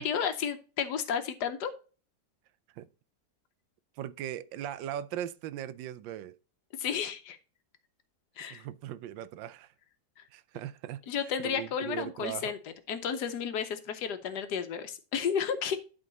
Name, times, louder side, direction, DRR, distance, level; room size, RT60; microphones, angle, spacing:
voice 1, 0.0-1.7 6.8-7.4 8.4-8.6 10.2-10.3 11.1-12.6 12.9-15.8, left 7 dB, 70° left, 1.3 m, -32 dB
voice 2, 4.0-6.4 8.5-9.7 10.3-11.0 11.4-12.5, right 11 dB, 90° right, 1.3 m, -39 dB
11.5 x 3.9 x 3.9 m
omnidirectional pair, 2.0 m